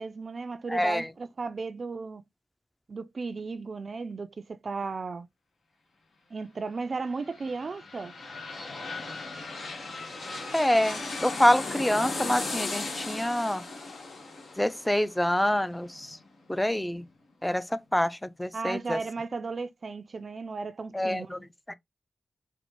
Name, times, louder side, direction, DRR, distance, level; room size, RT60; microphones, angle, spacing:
voice 1, 0.0-2.2 2.9-5.3 6.3-8.1 18.5-21.3, right 4 dB, 60° right, 0.3 m, -35 dB
voice 2, 0.7-1.1 10.5-13.6 14.6-16.2 16.5-17.1 17.4-19.0 20.9-21.7, left 1 dB, 10° left, 0.4 m, -26 dB
sound 1, 7.0-16.6 17.0-17.1, left 3 dB, 85° left, 1.2 m, -37 dB
4.2 x 2.1 x 2.9 m
cardioid pair, 45°, 0 cm